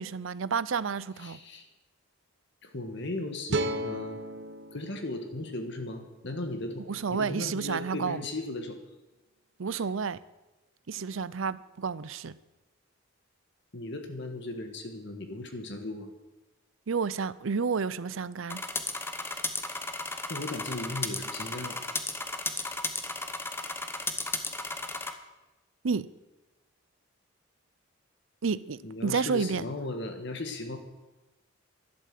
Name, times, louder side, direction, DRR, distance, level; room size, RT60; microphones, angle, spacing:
voice 1, 0.0-1.4 6.9-8.3 9.6-10.2 10.9-12.4 16.9-18.6 25.8-26.1 28.4-29.7, right 5 dB, 75° right, 0.6 m, -30 dB
voice 2, 1.2-1.7 2.6-4.2 4.7-8.8 9.7-9.9 13.7-16.1 20.3-21.8 28.8-30.8, left 2 dB, 60° left, 1.6 m, -37 dB
sound 1, 3.5-6.7, right 1 dB, 60° right, 0.9 m, -35 dB
sound 2, 18.5-25.1, left 3 dB, 10° left, 1.0 m, -34 dB
12.0 x 11.5 x 7.6 m
head